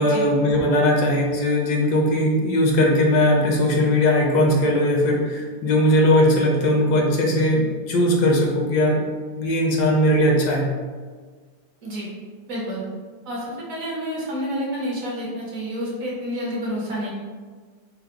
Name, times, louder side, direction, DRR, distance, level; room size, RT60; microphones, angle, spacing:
voice 1, 0.0-9.0 9.4-10.7, left 1 dB, 75° left, -1 dB, 1.2 m, -19 dB
voice 2, 12.5-12.8 13.3-17.1, equal, 55° right, -4 dB, 1.2 m, -29 dB
4.6 x 2.1 x 3.5 m, 1.5 s
omnidirectional pair, 1.8 m